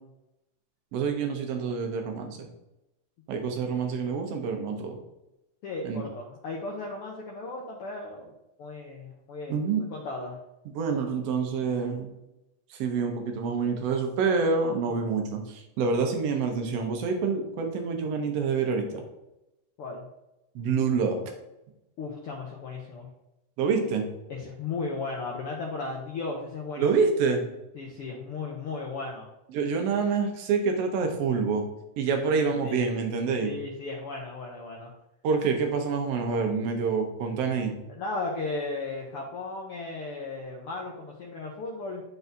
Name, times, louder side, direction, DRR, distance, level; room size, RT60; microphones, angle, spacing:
voice 1, 0.9-2.5 3.3-5.0 5.8-6.0 9.5-9.9 10.8-12.1 12.7-19.0 20.6-21.2 23.6-24.1 26.8-27.4 29.5-31.6 32.0-33.5 35.2-37.7, right 5 dB, 65° right, 3 dB, 1.7 m, -27 dB
voice 2, 5.6-8.3 8.6-9.6 9.9-10.4 19.8-20.1 22.0-23.1 24.3-26.9 27.7-29.3 32.2-32.8 33.4-34.9 37.9-42.0, left 3 dB, 80° left, -1 dB, 1.2 m, -35 dB
12.0 x 4.0 x 2.7 m, 0.93 s
omnidirectional pair, 3.7 m